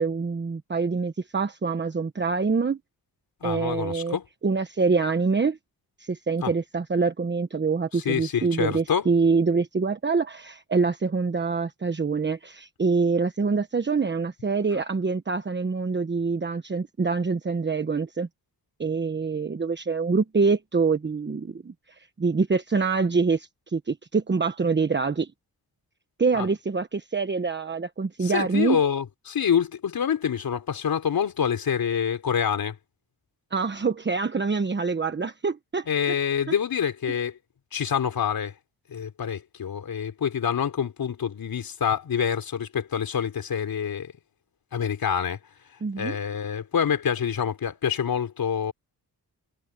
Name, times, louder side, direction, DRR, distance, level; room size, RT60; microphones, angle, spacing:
voice 1, 0.0-2.8 3.4-4.2 4.4-5.6 6.0-18.3 18.8-25.3 26.2-28.8 33.5-35.9 45.8-46.2, right 4 dB, 30° right, 1.2 m, -25 dB
voice 2, 3.4-4.2 6.4-6.5 7.9-9.1 14.7-14.8 26.3-26.5 28.2-32.8 35.9-37.4 37.7-38.5 38.9-44.1 44.7-45.4 46.0-48.7, left 8 dB, 70° left, 3.9 m, -26 dB
cardioid pair, 85°, 37 cm